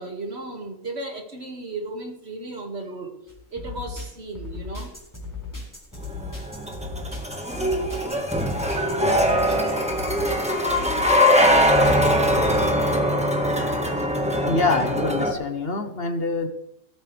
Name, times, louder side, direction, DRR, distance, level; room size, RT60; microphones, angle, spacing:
voice 1, 0.0-3.2 3.5-4.9, right 2 dB, 50° right, 2 dB, 2.5 m, -35 dB
sound 1, 3.3-12.6, left 3 dB, 15° left, 3.9 m, -37 dB
sound 2, 6.0-15.3, equal, 5° right, 1.7 m, -21 dB
voice 2, 14.5-16.5, left 3 dB, 50° left, 7 dB, 1.2 m, -25 dB
17.5 x 13.0 x 3.4 m, 0.87 s
omnidirectional pair, 1.4 m